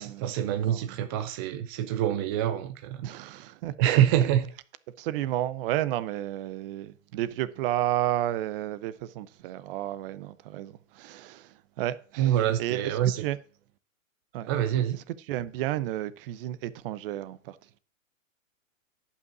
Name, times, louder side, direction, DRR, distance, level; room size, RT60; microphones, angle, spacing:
voice 1, 0.0-3.1 3.8-4.4 12.2-13.2 14.5-15.0, right 11 dB, 20° right, 0.3 m, -26 dB
voice 2, 3.0-4.3 5.0-13.4 14.3-14.5 14.9-17.8, right 13 dB, 45° right, 0.8 m, -32 dB
10.5 x 5.8 x 6.1 m
hypercardioid pair, 130°, 40 cm